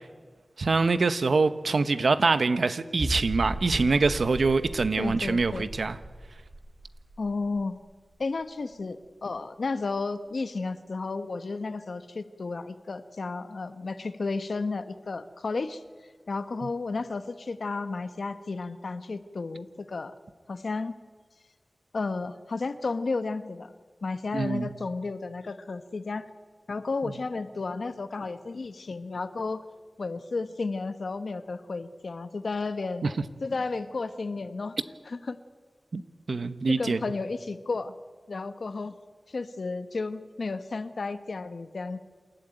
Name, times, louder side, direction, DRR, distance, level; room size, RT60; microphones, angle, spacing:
voice 1, 0.6-6.0 24.3-24.7 35.9-36.0 36.3-37.0, right 4 dB, 85° right, 1.0 m, -24 dB
sound 1, 3.0-8.4 8.7-8.8 9.3-9.4, right 1 dB, 45° right, 2.6 m, -37 dB
voice 2, 5.0-5.7 7.2-7.8 8.2-15.8 16.3-20.1 20.5-20.9 21.9-23.7 24.0-26.3 26.7-29.6 30.0-33.1 33.4-34.8 35.1-35.4 36.7-37.9 38.3-38.9 39.3-42.0, left 3 dB, 85° left, 1.2 m, -33 dB
28.0 x 13.5 x 8.9 m
wide cardioid pair, 70°, 0 cm